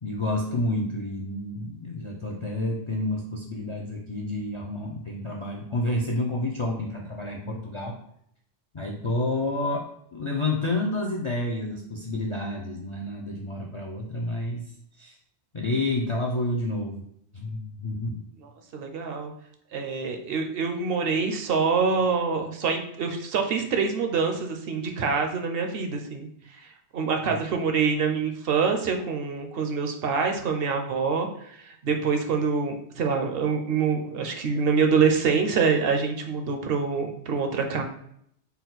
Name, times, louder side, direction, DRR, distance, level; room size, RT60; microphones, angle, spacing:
voice 1, 0.0-8.0 8.7-9.8 10.1-14.6 15.0-15.2 15.5-17.0 17.3-18.2 27.3-27.4, left 2 dB, 55° left, -1 dB, 0.3 m, -29 dB
voice 2, 18.4-19.3 19.7-26.3 26.5-26.7 26.9-37.8, right 5 dB, 65° right, 4 dB, 0.7 m, -25 dB
4.1 x 2.2 x 3.9 m, 0.71 s
omnidirectional pair, 1.1 m